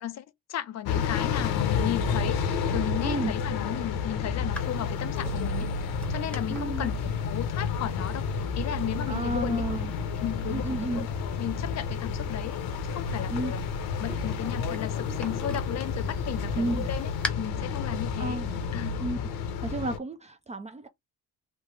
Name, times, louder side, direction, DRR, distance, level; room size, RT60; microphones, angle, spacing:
voice 1, 0.0-8.3 8.6-9.7 10.1-10.7 11.0-11.1 11.4-12.6 12.8-13.6 14.0-18.4 18.7-19.0, left 11 dB, 45° left, 0.5 m, -35 dB
sound 1, 0.9-20.0, left 5 dB, 75° left, 0.8 m, -30 dB
voice 2, 3.0-3.3 6.5-6.9 9.1-9.9 10.5-11.1 13.3-13.5 16.6-16.9 18.2-18.5 19.0-19.2 19.6-20.9, right 2 dB, 20° right, 0.4 m, -31 dB
sound 2, 4.5-17.3, left 1 dB, 5° left, 0.9 m, -45 dB
3.2 x 2.1 x 3.2 m
cardioid pair, 100°, 38 cm